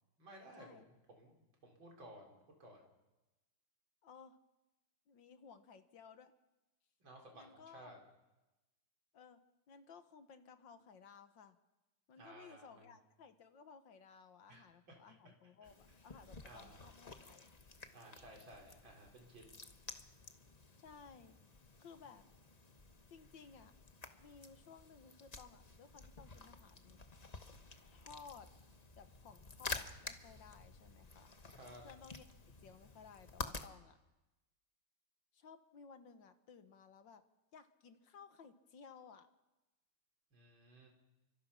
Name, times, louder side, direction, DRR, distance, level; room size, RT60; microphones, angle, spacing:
voice 1, 0.2-2.8 7.0-8.0 12.1-12.9 14.5-15.2 16.1-16.9 17.9-19.4 31.5-31.8 40.3-40.9, right 1 dB, 60° right, 1 dB, 5.1 m, -57 dB
voice 2, 4.0-4.4 5.1-6.3 7.3-7.9 9.1-9.4 9.7-11.6 12.1-17.5 20.8-21.4 21.8-22.2 23.1-23.7 24.2-27.0 27.9-28.5 29.0-31.3 31.8-32.2 32.6-34.0 35.3-37.2 37.5-39.3, left 6 dB, 60° left, 9 dB, 1.8 m, -58 dB
sound 1, 15.6-33.7, left 3 dB, 30° left, 0.8 m, -51 dB
29.5 x 24.5 x 5.8 m, 1.1 s
omnidirectional pair, 2.4 m